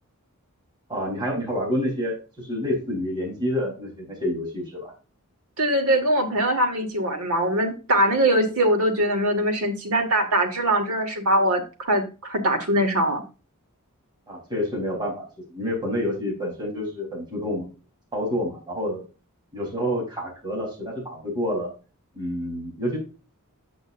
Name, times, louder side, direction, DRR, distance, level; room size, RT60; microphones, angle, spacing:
voice 1, 0.9-4.9 14.3-17.7 18.1-19.0 19.5-21.7 22.1-23.0, equal, 20° right, -3 dB, 3.9 m, -28 dB
voice 2, 5.6-13.2, right 1 dB, 85° right, 4 dB, 2.0 m, -22 dB
9.0 x 8.2 x 2.6 m, 0.32 s
head